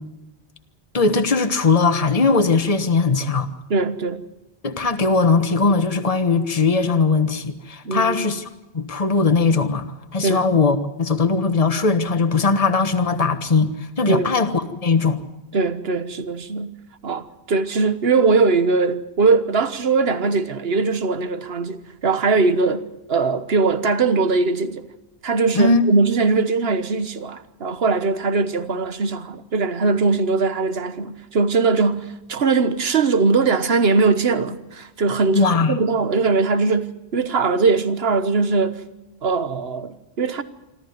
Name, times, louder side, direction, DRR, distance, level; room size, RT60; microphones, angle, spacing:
voice 1, 0.9-3.5 4.6-8.5 8.7-9.8 10.1-15.2 25.5-25.8 35.3-35.8, left 4 dB, 35° left, 1.4 m, -19 dB
voice 2, 3.7-4.2 7.8-8.3 10.2-10.5 14.1-14.3 15.5-16.8 17.0-24.8 25.2-38.8 39.2-40.4, right 4 dB, 70° right, 1.5 m, -21 dB
26.5 x 13.5 x 9.5 m
omnidirectional pair, 1.1 m